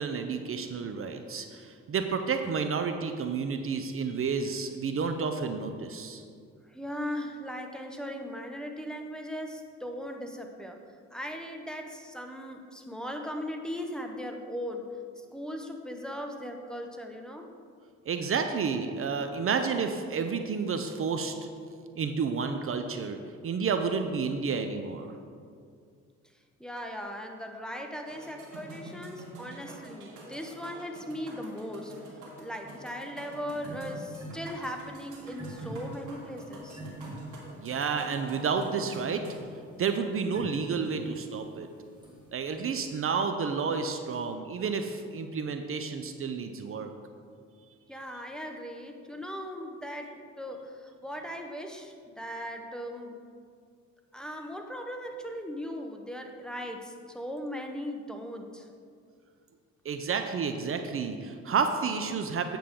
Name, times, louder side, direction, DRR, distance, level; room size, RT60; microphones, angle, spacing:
voice 1, 0.0-6.2 18.1-21.3 22.0-23.2 23.4-25.2 37.6-39.2 39.8-41.7 42.3-46.9 59.8-62.6, right 5 dB, 45° right, 7 dB, 0.6 m, -30 dB
voice 2, 6.6-10.8 11.1-14.9 15.2-17.5 26.6-36.8 47.9-53.2 54.1-58.7, equal, ahead, 3 dB, 0.8 m, -38 dB
sound 1, 28.1-39.4, right 1 dB, 85° right, 1.7 m, -48 dB
sound 2, 33.5-43.1, right 2 dB, 15° right, 2.1 m, -46 dB
8.6 x 7.4 x 3.7 m, 2.2 s
cardioid pair, 90°, 30 cm